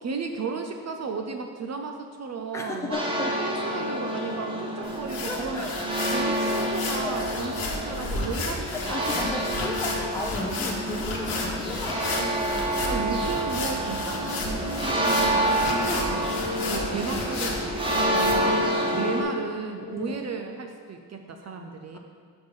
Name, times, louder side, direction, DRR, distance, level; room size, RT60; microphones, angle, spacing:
voice 1, 0.0-3.0 3.4-5.7 6.1-8.7 9.0-9.3 12.8-16.3 16.7-22.0, right 5 dB, 50° right, 4 dB, 0.5 m, -34 dB
voice 2, 2.5-3.4 5.3-5.9 7.0-7.2 8.7-12.9 15.9-16.1 18.1-18.3 19.8-20.3, left 2 dB, 10° left, 0 dB, 0.6 m, -34 dB
sound 1, 2.9-19.2, right 1 dB, 15° right, 0.9 m, -28 dB
sound 2, 4.8-18.3, left 3 dB, 75° left, 1.1 m, -33 dB
5.9 x 5.3 x 5.2 m, 2.1 s
wide cardioid pair, 135°, 36 cm